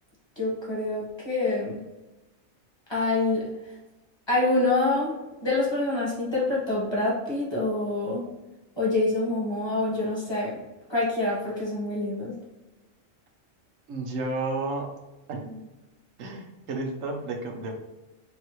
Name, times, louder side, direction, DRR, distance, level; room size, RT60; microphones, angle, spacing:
voice 1, 0.4-1.8 2.9-3.5 4.3-8.3 8.8-10.6 10.9-12.3, left 2 dB, 20° left, -6 dB, 1.4 m, -26 dB
voice 2, 13.9-14.9 15.3-15.7 16.2-17.8, right 2 dB, 85° right, 2 dB, 1.1 m, -32 dB
4.7 x 2.9 x 3.0 m, 1.0 s
omnidirectional pair, 1.3 m